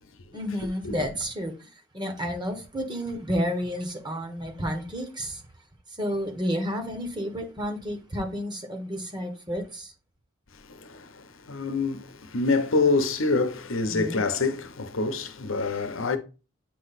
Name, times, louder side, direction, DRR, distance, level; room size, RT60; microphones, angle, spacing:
voice 1, 0.3-1.7 1.9-5.4 6.0-9.9 13.9-14.3, equal, 20° right, 1.1 m, -31 dB
voice 2, 10.5-16.2, left 3 dB, 70° left, 0.9 m, -26 dB
8.5 x 3.1 x 4.1 m
head